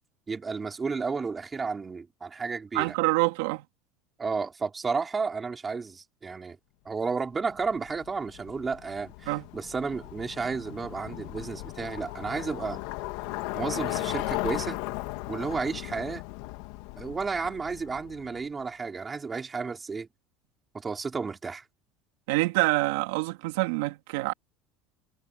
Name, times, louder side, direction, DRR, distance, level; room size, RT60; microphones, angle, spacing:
voice 1, 0.3-2.9 4.2-6.6 6.8-12.8 13.5-14.8 15.3-16.2 17.0-20.1 20.7-21.6, right 4 dB, 15° right, 4.8 m, -32 dB
voice 2, 2.7-3.6 9.3-9.5 22.3-24.3, right 22 dB, 85° right, 2.7 m, -26 dB
Bicycle, 7.5-18.4, left 19 dB, 65° left, 2.3 m, -37 dB
cardioid pair, 180°, 0 cm